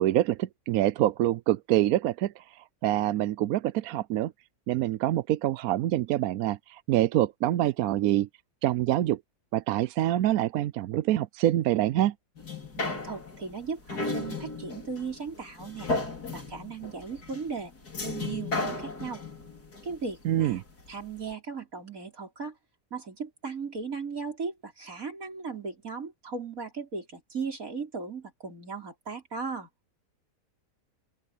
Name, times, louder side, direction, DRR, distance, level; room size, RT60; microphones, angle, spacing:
voice 1, 0.0-2.4 2.8-4.3 4.7-8.3 8.6-9.2 9.5-12.1 20.2-20.6, right 13 dB, 70° right, 0.9 m, -25 dB
sound 1, 12.4-20.9 21.3-21.4, left 3 dB, 70° left, 4.9 m, -35 dB
voice 2, 12.8-15.9 16.3-17.7 18.0-19.2 19.8-20.6 20.9-22.5 22.9-29.7, right 5 dB, 55° right, 5.6 m, -37 dB
open air
omnidirectional pair, 1.7 m